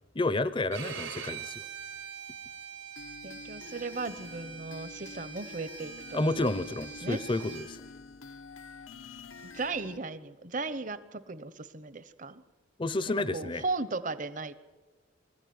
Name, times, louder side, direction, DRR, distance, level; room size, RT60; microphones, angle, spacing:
voice 1, 0.1-1.6 6.1-7.8 12.8-13.6, left 2 dB, 25° left, 14 dB, 0.7 m, -30 dB
Bowed string instrument, 0.7-7.7, right 8 dB, 90° right, 4.4 m, -44 dB
sound 1, 3.0-10.0, left 4 dB, 85° left, 1.2 m, -48 dB
voice 2, 3.2-6.5 7.0-7.2 9.4-12.4 13.3-14.5, right 3 dB, 40° right, 14 dB, 1.0 m, -36 dB
25.0 x 14.5 x 9.5 m, 1.3 s
head